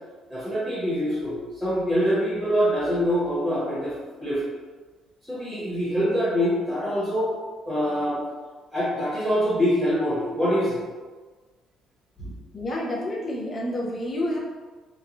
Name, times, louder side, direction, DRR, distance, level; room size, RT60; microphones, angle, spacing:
voice 1, 0.3-3.9 4.2-4.4 5.2-7.3 7.6-8.2 8.7-10.8, equal, 5° left, -11 dB, 1.0 m, -24 dB
voice 2, 12.5-14.4, left 1 dB, 25° left, -4 dB, 0.6 m, -29 dB
3.0 x 2.3 x 2.5 m, 1.4 s
cardioid pair, 155°, 0 cm